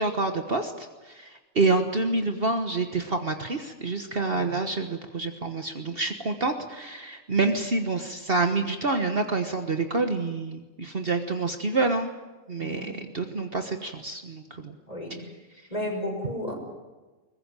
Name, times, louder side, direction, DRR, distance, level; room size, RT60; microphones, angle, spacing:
voice 1, 0.0-12.1 12.5-14.7, right 3 dB, 45° right, 6 dB, 1.5 m, -27 dB
voice 2, 12.6-12.9 14.9-15.2 15.7-16.5, left 1 dB, 30° left, 2 dB, 6.1 m, -33 dB
22.5 x 19.5 x 9.1 m, 1.2 s
omnidirectional pair, 1.4 m